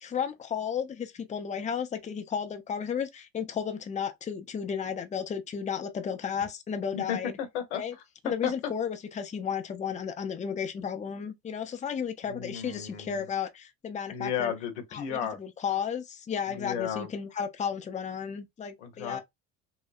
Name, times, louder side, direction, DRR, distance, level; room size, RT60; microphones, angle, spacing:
voice 1, 0.0-7.3 7.7-7.9 8.2-14.5 14.9-19.2, left 7 dB, 20° left, 0.5 m, -33 dB
voice 2, 6.9-7.8 8.4-8.7 12.2-13.3 14.1-15.4 16.5-17.1 18.8-19.2, left 8 dB, 90° left, 0.7 m, -34 dB
2.8 x 2.0 x 2.3 m
hypercardioid pair, 70°, 33 cm